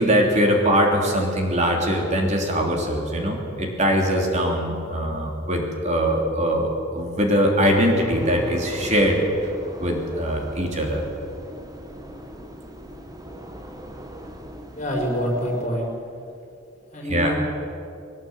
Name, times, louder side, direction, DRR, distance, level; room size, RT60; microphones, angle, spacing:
voice 1, 0.0-9.2 9.8-11.0 17.1-17.3, equal, 35° right, 1 dB, 3.2 m, -22 dB
sound 1, 7.6-15.7, equal, 20° right, 2.0 m, -39 dB
voice 2, 14.8-15.9 16.9-17.4, equal, 40° left, 0 dB, 5.8 m, -25 dB
21.0 x 19.0 x 8.8 m, 2.6 s
head